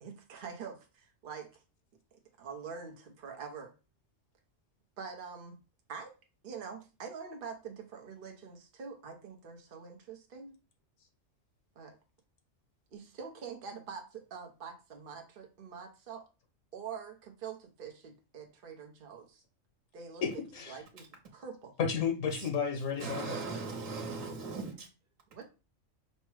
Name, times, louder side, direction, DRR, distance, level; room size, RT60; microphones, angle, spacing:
voice 1, 0.0-1.6 2.1-3.7 5.0-5.5 5.9-6.1 6.4-10.6 11.8-12.0 12.9-16.2 16.7-19.4 19.9-21.1 21.3-21.7 25.3-25.5, right 6 dB, 50° right, 0.8 m, -45 dB
voice 2, 20.2-20.8 21.8-23.4, left 6 dB, 85° left, 1.4 m, -32 dB
voice 3, 23.0-24.7, right 4 dB, 85° right, 1.4 m, -38 dB
5.4 x 2.1 x 4.6 m
omnidirectional pair, 1.3 m